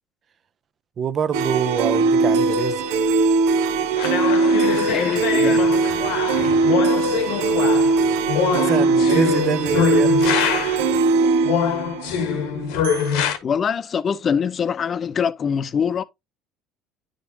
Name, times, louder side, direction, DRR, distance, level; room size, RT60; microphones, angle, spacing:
voice 1, 1.0-2.8 7.7-7.9 8.5-10.2, right 7 dB, 40° right, 0.6 m, -25 dB
sound 1, 1.3-13.1, right 3 dB, 90° right, 0.9 m, -20 dB
sound 2, 4.0-10.9 11.4-13.4, left 8 dB, 85° left, 1.3 m, -24 dB
voice 2, 4.9-5.8 13.4-16.0, left 7 dB, 40° left, 0.7 m, -24 dB
9.2 x 5.1 x 2.7 m
supercardioid pair, 95°, 0 cm